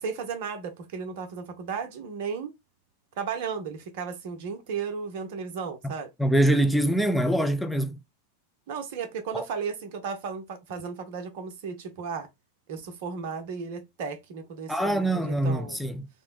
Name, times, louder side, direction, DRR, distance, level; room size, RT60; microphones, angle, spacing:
voice 1, 0.0-2.5 3.2-6.1 8.7-12.3 12.7-15.9, right 6 dB, 50° right, 0.6 m, -34 dB
voice 2, 6.2-8.0 9.3-9.4 14.7-16.1, right 1 dB, ahead, 0.4 m, -24 dB
2.5 x 2.0 x 3.4 m
figure-of-eight pair, 90°, 0 cm